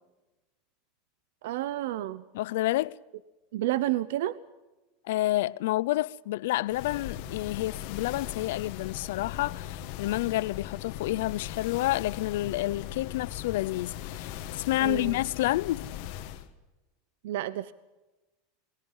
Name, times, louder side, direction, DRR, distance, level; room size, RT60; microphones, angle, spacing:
voice 1, 1.4-2.2 3.5-4.4 14.8-15.2 17.2-17.7, right 14 dB, 65° right, 0.8 m, -30 dB
voice 2, 2.3-3.0 5.0-15.9, left 17 dB, 65° left, 0.6 m, -29 dB
sound 1, 6.7-16.5, left 11 dB, 45° left, 1.6 m, -39 dB
28.5 x 20.0 x 5.6 m
supercardioid pair, 175°, 0 cm